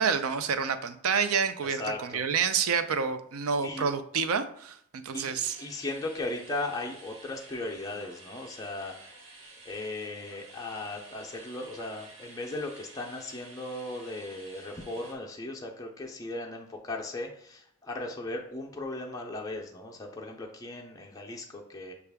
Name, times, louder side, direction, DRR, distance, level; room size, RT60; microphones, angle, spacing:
voice 1, 0.0-5.6, right 6 dB, 75° right, 10 dB, 0.4 m, -28 dB
voice 2, 1.6-2.2 3.6-3.9 5.1-9.1 9.6-21.9, left 2 dB, 15° left, 0 dB, 0.4 m, -37 dB
sound 1, 5.4-15.1, right 2 dB, 60° right, 1.2 m, -51 dB
6.5 x 2.4 x 3.4 m, 0.66 s
head